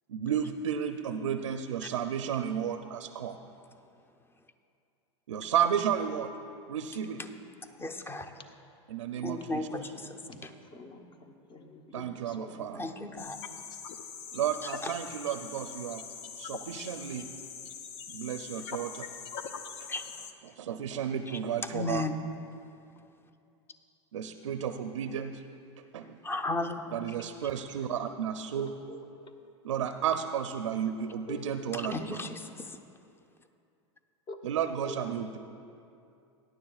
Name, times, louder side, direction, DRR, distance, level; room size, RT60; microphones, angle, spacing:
voice 1, 0.1-3.4 5.3-6.3 6.7-7.2 8.9-9.7 11.9-12.8 14.3-17.2 18.1-19.1 20.4-22.1 24.1-25.4 25.9-26.2 26.9-28.7 29.6-32.3 34.4-35.4, right 8 dB, 90° right, 7 dB, 0.5 m, -32 dB
voice 2, 7.8-8.3 9.2-10.5 12.7-13.4 14.8-14.9 19.9-20.0 21.7-22.1 26.2-26.9 31.7-32.8, left 2 dB, 15° left, 8 dB, 0.7 m, -35 dB
voice 3, 10.7-12.1 12.4-12.8 28.9-29.3 31.3-31.4 31.9-32.0 34.3-34.5 34.9-35.0, left 2 dB, 35° left, 5 dB, 1.1 m, -45 dB
sound 1, 13.2-20.3, left 6 dB, 60° left, 0.7 m, -42 dB
18.0 x 10.0 x 2.4 m, 2.6 s
hypercardioid pair, 105°, 16 cm